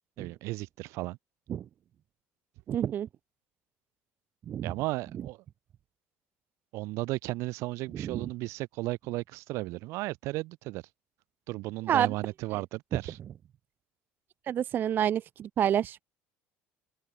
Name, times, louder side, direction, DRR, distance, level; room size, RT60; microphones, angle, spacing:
voice 1, 0.2-1.2 4.6-5.4 6.7-10.8 11.5-13.2, right 20 dB, 75° right, 1.3 m, -34 dB
voice 2, 2.7-3.1 4.5-4.7 8.0-8.2 11.9-12.1 14.5-16.0, right 10 dB, 40° right, 0.4 m, -28 dB
open air
cardioid pair, 110°, 5 cm